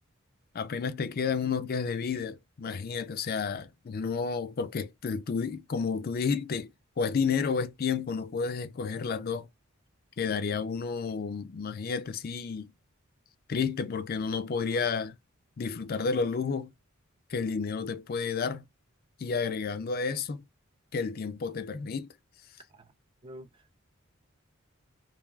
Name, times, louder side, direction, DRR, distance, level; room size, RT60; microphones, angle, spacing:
voice 1, 0.5-6.7 7.0-9.5 10.2-12.7 13.5-15.2 15.6-16.7 17.3-18.7 19.2-20.4 20.9-22.1, left 5 dB, 45° left, 0.4 m, -31 dB
voice 2, 23.2-23.8, equal, 25° right, 0.4 m, -48 dB
3.2 x 2.3 x 2.2 m
head